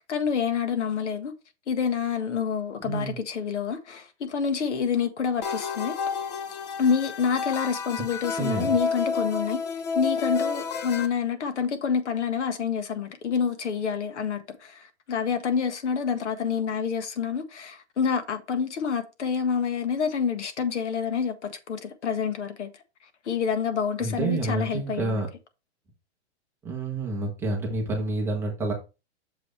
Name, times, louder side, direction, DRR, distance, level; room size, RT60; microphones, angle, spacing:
voice 1, 0.1-1.3 1.7-6.0 6.8-9.6 9.9-22.7 23.2-25.2, left 6 dB, 75° left, 1.6 m, -27 dB
voice 2, 2.8-3.2 8.4-8.7 24.0-25.3 26.6-28.7, right 2 dB, 5° right, 1.0 m, -28 dB
sound 1, 5.4-11.1, left 5 dB, 35° left, 0.9 m, -30 dB
6.8 x 5.8 x 3.2 m
hypercardioid pair, 170°, 35 cm